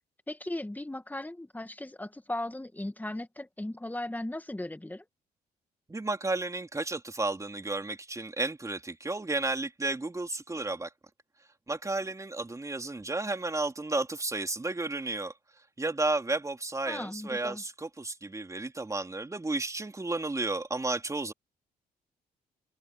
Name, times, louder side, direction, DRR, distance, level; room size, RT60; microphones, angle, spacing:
voice 1, 0.3-5.0 16.9-17.6, left 1 dB, 10° left, 2.1 m, -37 dB
voice 2, 5.9-10.9 11.7-15.3 15.8-21.3, right 2 dB, 20° right, 3.7 m, -32 dB
open air
supercardioid pair, 70°, 17 cm